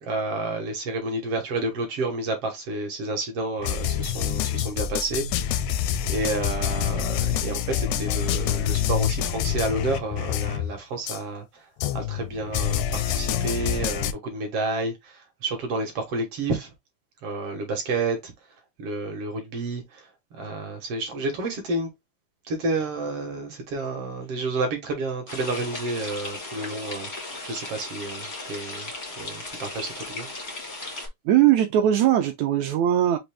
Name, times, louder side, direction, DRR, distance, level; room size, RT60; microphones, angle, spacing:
voice 1, 0.0-5.7 6.1-11.7 11.9-16.7 17.2-18.3 18.8-20.0 20.3-21.9 22.5-28.9 29.2-30.3, right 2 dB, 60° right, 1.6 m, -30 dB
sound 1, 3.6-10.7 11.1-11.2 11.8-14.1, left 10 dB, 85° left, 1.7 m, -26 dB
sound 2, 25.3-31.1, left 2 dB, 60° left, 0.6 m, -36 dB
voice 2, 31.2-33.2, right 11 dB, 80° right, 1.7 m, -20 dB
6.0 x 2.6 x 3.4 m
omnidirectional pair, 3.9 m